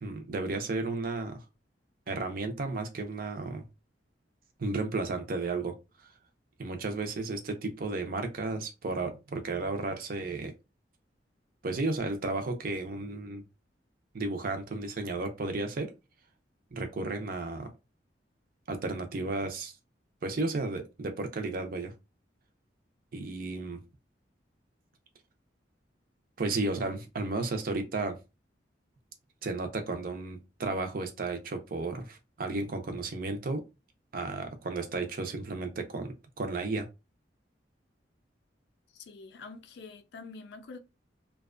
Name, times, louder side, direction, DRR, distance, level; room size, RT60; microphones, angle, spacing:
voice 1, 0.0-1.4 2.1-3.6 4.6-5.7 6.6-10.5 11.6-13.4 14.1-15.9 16.7-17.7 18.7-19.7 20.2-21.9 23.1-23.8 26.4-28.2 29.4-33.6 34.1-36.9, right 3 dB, 50° right, 0.5 m, -33 dB
voice 2, 38.9-40.8, left 4 dB, 65° left, 0.4 m, -46 dB
2.5 x 2.2 x 2.4 m
head